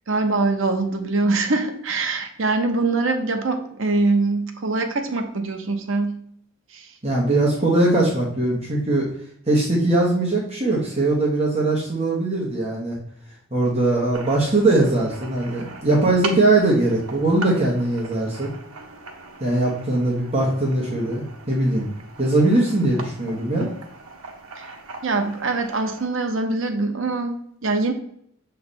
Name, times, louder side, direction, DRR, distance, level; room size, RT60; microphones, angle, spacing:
voice 1, 0.1-6.2 6.7-6.8 24.6-24.7 25.0-27.9, right 3 dB, 65° right, 5 dB, 0.8 m, -23 dB
voice 2, 7.0-9.1 9.5-13.0 13.5-18.5 19.4-21.9 22.2-23.7, right 2 dB, 30° right, -4 dB, 1.3 m, -20 dB
sound 1, 14.1-26.1, right 3 dB, 90° right, 1.0 m, -40 dB
6.8 x 3.4 x 4.2 m, 0.67 s
head